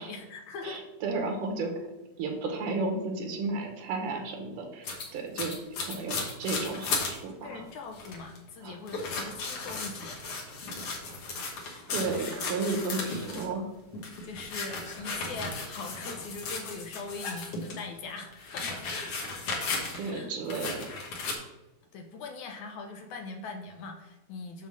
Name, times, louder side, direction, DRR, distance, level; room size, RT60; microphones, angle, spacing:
voice 1, 0.0-0.8 7.4-10.2 14.2-19.2 20.1-20.3 21.9-24.7, left 3 dB, 75° left, 4 dB, 2.1 m, -41 dB
voice 2, 0.6-1.7 2.2-7.6 8.6-8.8 11.9-13.7 19.9-21.0, right 3 dB, 85° right, 2 dB, 2.7 m, -33 dB
sound 1, 4.8-7.2 7.6-7.7 7.9-8.4 8.9-13.5 13.9-17.8 18.2-20.2 20.5-21.3, left 3 dB, 60° left, 2.0 m, -35 dB
7.2 x 3.9 x 6.3 m, 0.98 s
omnidirectional pair, 3.6 m